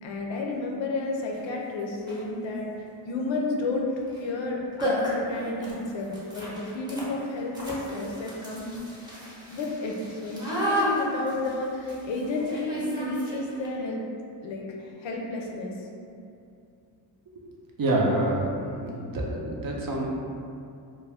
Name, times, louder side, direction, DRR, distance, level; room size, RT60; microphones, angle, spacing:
voice 1, 0.0-3.9 4.2-8.7 9.5-14.0 14.4-15.7, left 2 dB, 75° left, 0 dB, 0.6 m, -31 dB
sound 1, 1.3-1.4 2.0-2.3 4.0-4.2 4.5-4.6 4.8-13.7, equal, 10° right, 0.7 m, -33 dB
voice 2, 17.8-18.4 18.8-20.1, right 1 dB, 50° right, -2 dB, 0.5 m, -26 dB
2.3 x 2.2 x 3.4 m, 2.5 s
cardioid pair, 80°, 46 cm